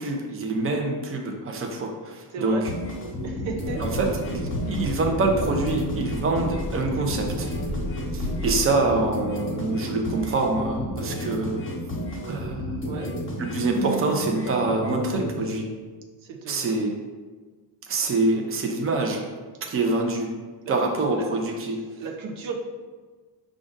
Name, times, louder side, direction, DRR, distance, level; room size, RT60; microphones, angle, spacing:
voice 1, 0.0-2.7 3.8-7.5 8.1-11.6 12.3-12.6 13.4-15.7 16.5-17.0 17.9-19.3 19.6-20.3 20.7-21.9, right 3 dB, 30° right, 2 dB, 0.7 m, -25 dB
voice 2, 2.3-2.6 3.2-4.1 8.9-9.1 12.8-13.2 16.2-16.7 19.8-20.0 20.6-20.7 21.2-21.3 22.0-22.5, right 4 dB, 75° right, 2 dB, 0.7 m, -35 dB
sound 1, 2.7-15.6, equal, 25° left, 1.0 m, -32 dB
sound 2, 3.6-8.7, left 1 dB, 50° right, 1.2 m, -32 dB
4.8 x 2.5 x 3.9 m, 1.4 s
cardioid pair, 85°, 48 cm